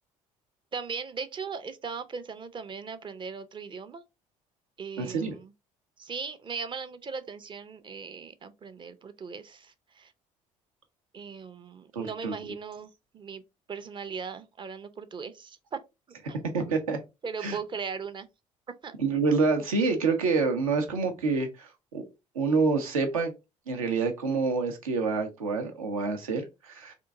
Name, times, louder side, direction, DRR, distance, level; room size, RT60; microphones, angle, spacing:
voice 1, 0.7-4.0 4.8-5.5 6.0-10.1 11.1-13.4 13.7-15.8 16.3-16.4 17.2-18.3 18.7-19.0, right 5 dB, 25° right, 0.5 m, -38 dB
voice 2, 5.0-5.4 11.9-12.3 16.5-17.0 17.4-17.6 19.0-22.0 22.3-23.3 23.7-26.9, right 4 dB, 75° right, 0.7 m, -27 dB
3.7 x 2.5 x 3.5 m
figure-of-eight pair, 50°, 18 cm